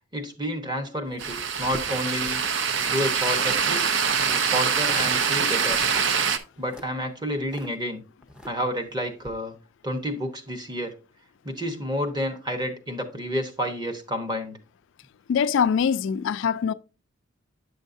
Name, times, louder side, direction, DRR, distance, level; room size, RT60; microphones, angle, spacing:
voice 1, 0.1-2.4 2.9-3.8 4.5-5.8 6.6-8.0 8.4-9.5 9.8-10.9 11.4-14.6, equal, 20° right, 1.0 m, -30 dB
sound 1, 1.0-2.9 3.2-3.7 4.0-4.4 4.8-5.3 5.7-7.7 8.2-8.8 9.2-9.3, equal, 5° right, 0.6 m, -43 dB
sound 2, 1.2-6.4, right 6 dB, 60° right, 0.6 m, -24 dB
voice 2, 15.3-16.7, left 7 dB, 60° left, 0.3 m, -23 dB
9.0 x 6.3 x 2.6 m
head